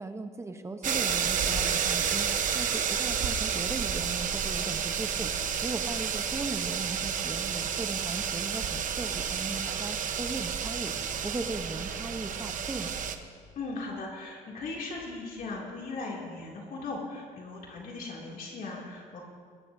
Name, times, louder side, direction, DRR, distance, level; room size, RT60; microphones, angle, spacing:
voice 1, 0.0-2.3 2.5-12.9, right 3 dB, 15° right, 7 dB, 0.9 m, -38 dB
sound 1, 0.8-13.2, right 7 dB, 50° right, 1.0 m, -30 dB
voice 2, 13.6-19.2, left 3 dB, 55° left, -3 dB, 2.7 m, -38 dB
21.0 x 16.5 x 2.7 m, 2.1 s
cardioid pair, 110°, 17 cm